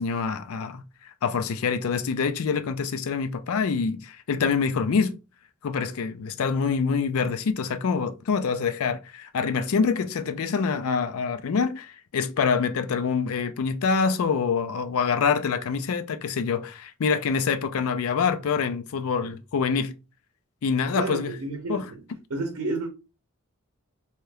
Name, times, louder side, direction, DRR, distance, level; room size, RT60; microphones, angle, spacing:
voice 1, 0.0-5.2 5.6-20.0 20.6-21.4 21.7-21.9, left 5 dB, 75° left, 0.4 m, -26 dB
voice 2, 20.9-22.0 22.3-22.9, right 3 dB, 80° right, 0.6 m, -30 dB
2.8 x 2.2 x 3.2 m
head